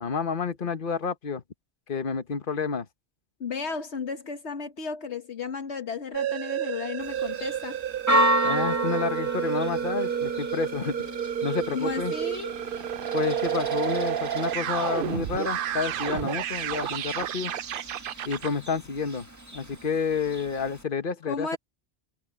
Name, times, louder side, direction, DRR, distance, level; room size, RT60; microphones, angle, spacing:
voice 1, 0.0-1.4 1.9-2.9 8.4-11.1 11.4-12.1 13.1-17.5 18.2-19.3 19.5-21.6, left 5 dB, 50° left, 1.3 m, -29 dB
voice 2, 3.4-7.8 11.7-12.5 21.3-21.6, left 5 dB, 75° left, 1.6 m, -33 dB
sound 1, 6.1-18.5, right 10 dB, 60° right, 0.7 m, -30 dB
Church bell, 7.0-20.8, right 1 dB, 15° right, 1.8 m, -32 dB
omnidirectional pair, 1.1 m